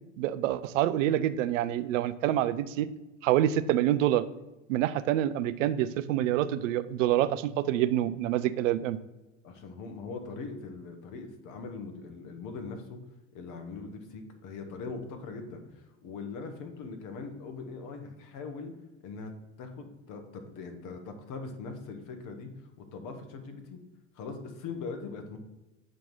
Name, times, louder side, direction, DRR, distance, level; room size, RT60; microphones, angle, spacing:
voice 1, 0.2-2.9 3.2-4.2 4.7-9.0, right 12 dB, 80° right, 15 dB, 0.5 m, -27 dB
voice 2, 9.4-13.0 13.3-18.7 19.0-19.3 19.6-23.8 24.1-25.4, left 4 dB, 55° left, 6 dB, 1.3 m, -41 dB
7.7 x 3.0 x 5.3 m, 1.0 s
hypercardioid pair, 80°, 38 cm